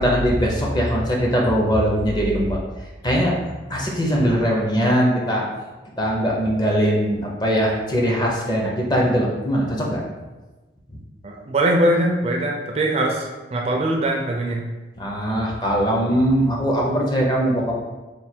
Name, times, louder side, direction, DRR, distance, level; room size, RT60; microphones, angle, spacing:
voice 1, 0.0-2.6 3.0-3.4 3.7-5.4 6.0-10.0 10.9-11.0 15.0-17.7, equal, 20° left, -2 dB, 0.5 m, -21 dB
voice 2, 11.2-14.7 16.1-16.2, right 1 dB, 35° right, 0 dB, 0.4 m, -22 dB
3.2 x 2.2 x 4.3 m, 1.2 s
head